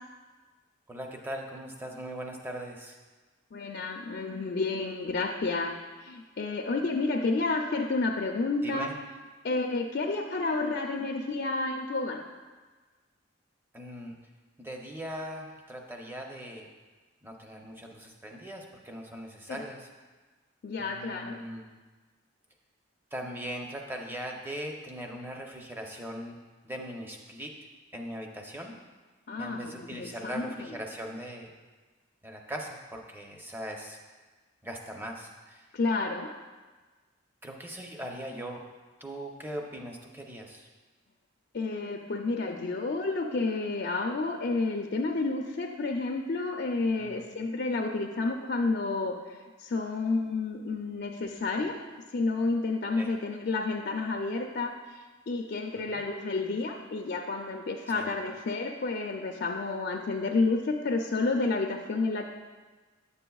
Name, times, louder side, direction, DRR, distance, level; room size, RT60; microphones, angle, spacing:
voice 1, 0.9-3.0 8.6-8.9 13.7-14.1 14.6-16.7 17.2-19.9 20.8-21.7 23.1-26.4 26.6-27.5 27.9-28.7 29.4-31.5 32.2-34.0 34.6-35.7 37.4-38.6 39.0-40.7 47.0-47.2 53.0-53.1 55.9-56.0 57.9-58.1, equal, 10° right, 1 dB, 0.6 m, -40 dB
voice 2, 3.5-5.7 6.0-8.9 9.4-12.2 19.5-19.6 20.6-21.4 29.3-30.8 35.7-36.3 41.5-49.2 49.6-51.8 52.1-54.8 55.3-62.2, left 3 dB, 50° left, 2 dB, 0.4 m, -30 dB
9.5 x 6.8 x 2.3 m, 1.3 s
head